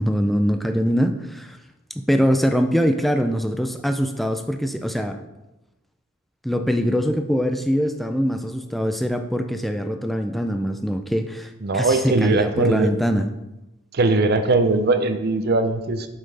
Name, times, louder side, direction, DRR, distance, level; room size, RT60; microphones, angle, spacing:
voice 1, 0.0-1.6 2.0-5.2 6.4-13.3, equal, ahead, 6 dB, 0.3 m, -23 dB
voice 2, 11.6-12.9 13.9-16.1, right 3 dB, 50° right, 8 dB, 0.5 m, -20 dB
7.4 x 5.5 x 3.3 m, 0.98 s
head